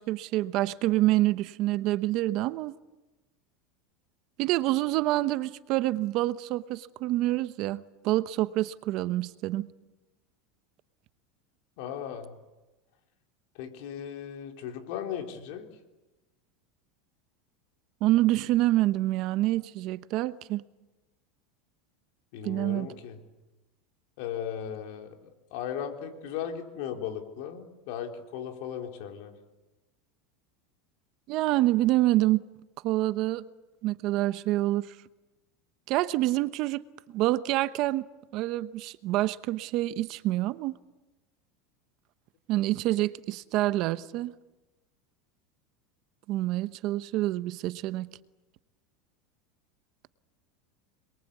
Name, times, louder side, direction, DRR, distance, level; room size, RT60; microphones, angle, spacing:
voice 1, 0.0-2.7 4.4-9.7 18.0-20.6 22.4-22.9 31.3-32.4 32.8-33.5 33.8-34.9 35.9-36.8 37.1-38.0 38.3-40.7 42.5-44.3 46.3-48.1, right 16 dB, 50° right, 0.9 m, -27 dB
voice 2, 11.8-12.3 13.5-15.7 22.3-23.2 24.2-29.3, left 9 dB, 65° left, 3.8 m, -37 dB
26.5 x 22.5 x 8.4 m
supercardioid pair, 140°, 0 cm